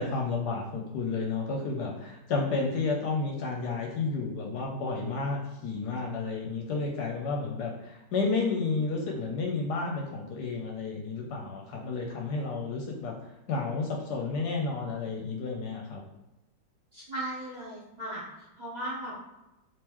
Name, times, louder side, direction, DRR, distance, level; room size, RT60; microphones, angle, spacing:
voice 1, 0.0-16.0, left 4 dB, 75° left, 0 dB, 1.1 m, -31 dB
voice 2, 16.9-19.1, right 1 dB, 25° right, -8 dB, 1.2 m, -37 dB
3.6 x 2.9 x 3.0 m, 0.96 s
omnidirectional pair, 1.9 m